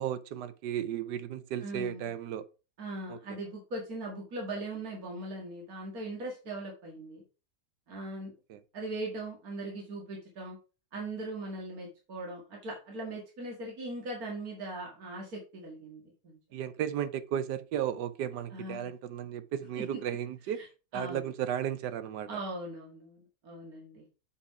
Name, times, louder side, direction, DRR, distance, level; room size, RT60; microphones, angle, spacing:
voice 1, 0.0-2.4 3.1-3.2 8.5-8.6 16.5-20.6 20.9-22.3, right 10 dB, 80° right, 1.3 m, -34 dB
voice 2, 1.6-2.1 2.8-7.2 7.9-8.3 8.7-10.6 10.9-16.4 18.5-18.9 19.8-19.9 20.5-20.7 20.9-21.3 22.3-24.0, right 2 dB, 60° right, 2.4 m, -40 dB
7.1 x 5.6 x 4.6 m
omnidirectional pair, 1.8 m